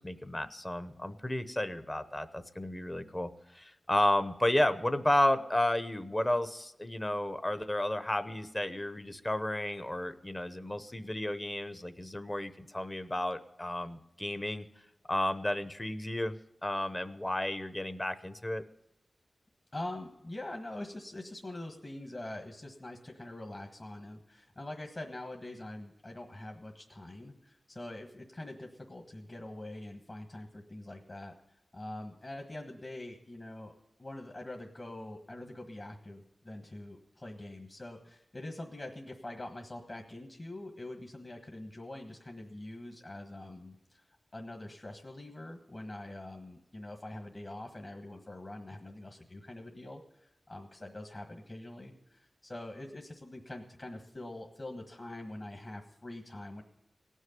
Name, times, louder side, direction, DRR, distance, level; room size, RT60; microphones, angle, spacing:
voice 1, 0.0-14.7 15.1-16.3 16.6-18.6, left 1 dB, 20° left, 12 dB, 0.8 m, -32 dB
voice 2, 19.7-33.7 34.0-44.0 44.3-56.6, left 1 dB, 40° left, 3 dB, 1.5 m, -44 dB
17.5 x 6.4 x 9.3 m, 0.89 s
wide cardioid pair, 85°, 0 cm